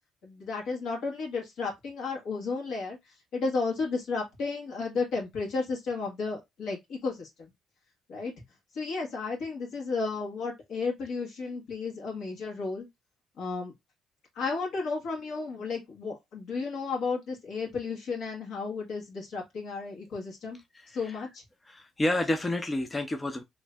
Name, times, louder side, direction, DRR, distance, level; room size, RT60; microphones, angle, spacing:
voice 1, 0.2-7.5 8.1-8.3 8.7-12.9 13.4-13.7 14.4-20.6 20.9-21.4, left 4 dB, 75° left, 1.7 m, -33 dB
voice 2, 21.7-23.4, left 1 dB, 20° left, 0.6 m, -29 dB
3.1 x 2.7 x 3.4 m
cardioid pair, 90°, 0 cm